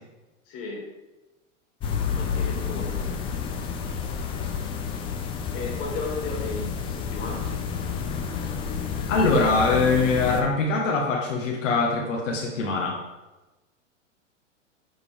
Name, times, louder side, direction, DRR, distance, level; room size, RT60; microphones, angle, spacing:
voice 1, 0.5-0.9 2.1-3.1 5.5-7.5, left 3 dB, 35° left, -2 dB, 2.1 m, -34 dB
sound 1, 1.8-10.4, left 6 dB, 15° left, 0.3 m, -30 dB
voice 2, 9.1-13.0, left 3 dB, 80° left, -2 dB, 1.3 m, -23 dB
7.6 x 4.0 x 3.4 m, 1.1 s
hypercardioid pair, 120°, 37 cm